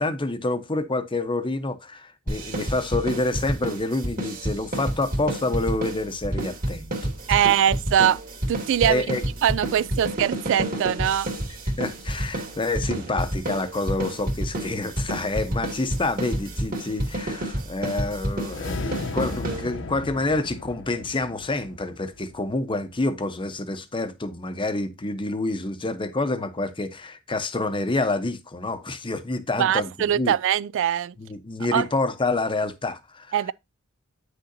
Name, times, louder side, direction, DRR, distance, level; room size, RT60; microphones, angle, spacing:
voice 1, 0.0-7.0 7.3-7.6 8.8-9.2 10.0-10.1 11.8-30.3 31.2-33.3, left 2 dB, 25° left, 0.8 m, -28 dB
sound 1, 2.3-20.0, right 1 dB, 40° right, 2.2 m, -29 dB
voice 2, 7.3-8.2 8.5-9.0 9.4-11.3 29.6-31.1 31.7-31.9 33.3-33.5, right 10 dB, 60° right, 0.3 m, -22 dB
sound 2, 18.4-22.8, left 2 dB, 60° left, 1.0 m, -35 dB
9.1 x 6.5 x 2.7 m
head